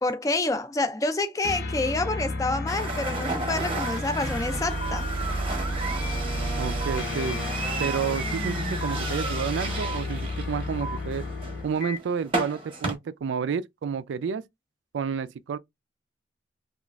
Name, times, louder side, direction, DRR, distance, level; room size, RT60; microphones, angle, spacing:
voice 1, 0.0-5.0, left 2 dB, 15° left, 0.3 m, -28 dB
sound 1, 1.4-11.8, left 1 dB, 60° left, 0.7 m, -32 dB
sound 2, 2.7-12.9, right 2 dB, 25° right, 0.7 m, -33 dB
sound 3, 3.8-4.0 4.8-5.0 5.8-6.0 6.8-7.0 7.8-8.0 8.8-9.0 9.8-10.0 10.8-11.0 11.8-12.0, right 3 dB, 80° left, 1.0 m, -35 dB
voice 2, 6.6-7.4 7.8-11.3 11.6-14.4 14.9-15.6, right 6 dB, 70° right, 0.3 m, -30 dB
2.9 x 2.4 x 2.3 m
head